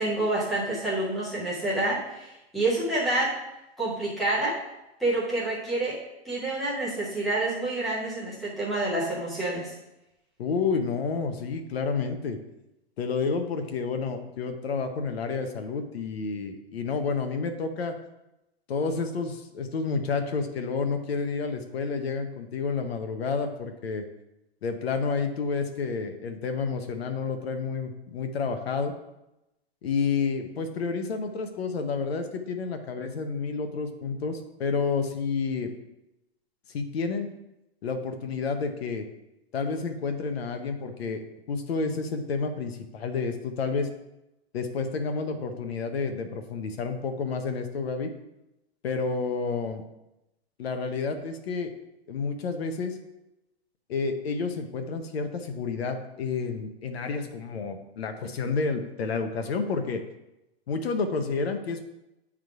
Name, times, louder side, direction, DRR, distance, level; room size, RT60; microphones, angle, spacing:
voice 1, 0.0-3.3 3.8-4.5 5.0-6.0 6.2-9.7, right 2 dB, ahead, -8 dB, 0.4 m, -28 dB
voice 2, 10.4-12.4 13.0-18.0 18.7-24.1 24.6-28.9 29.8-35.7 36.7-37.3 37.8-39.1 39.5-41.2 41.5-43.9 44.5-48.1 48.8-49.8 50.6-51.7 52.1-53.0 53.9-60.0 60.7-61.8, left 4 dB, 70° left, 6 dB, 0.9 m, -30 dB
7.9 x 3.7 x 4.7 m, 0.92 s
hypercardioid pair, 175°, 32 cm